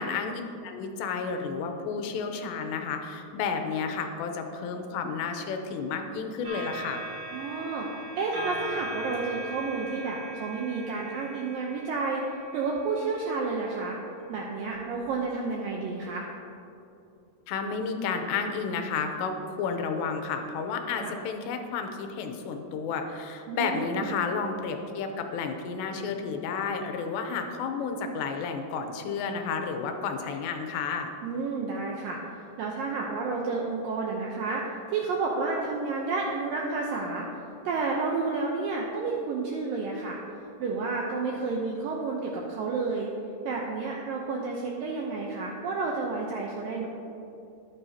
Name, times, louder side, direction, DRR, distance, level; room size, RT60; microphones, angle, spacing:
voice 1, 0.0-7.0 17.5-31.1, left 5 dB, 85° left, 5 dB, 3.0 m, -31 dB
sound 1, 6.4-13.9 14.7-14.8, right 2 dB, 55° right, 3.5 m, -40 dB
voice 2, 7.3-7.9 8.2-12.2 12.5-14.0 14.3-16.3 21.0-21.1 23.5-24.1 31.2-32.2 32.6-37.3 37.7-40.2 40.6-43.1 43.5-46.9, right 4 dB, 80° right, -1 dB, 2.0 m, -30 dB
13.0 x 10.5 x 2.8 m, 2.8 s
omnidirectional pair, 4.9 m